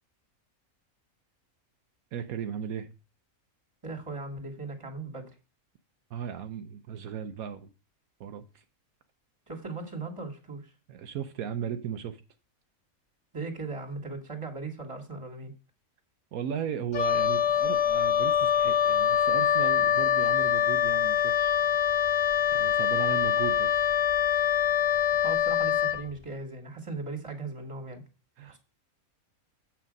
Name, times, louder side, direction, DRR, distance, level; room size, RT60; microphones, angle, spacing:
voice 1, 2.1-2.9 6.1-7.7 8.2-8.6 10.9-12.2 16.3-21.6 22.5-23.8 28.4-28.6, right 8 dB, 80° right, 1.1 m, -36 dB
voice 2, 3.8-5.3 9.5-10.7 13.3-15.5 25.2-28.0 28.5-28.6, right 3 dB, 20° right, 2.0 m, -38 dB
Wind instrument woodwind instrument, 16.9-26.0, left 9 dB, 60° left, 0.4 m, -24 dB
8.2 x 5.9 x 5.2 m
omnidirectional pair, 1.5 m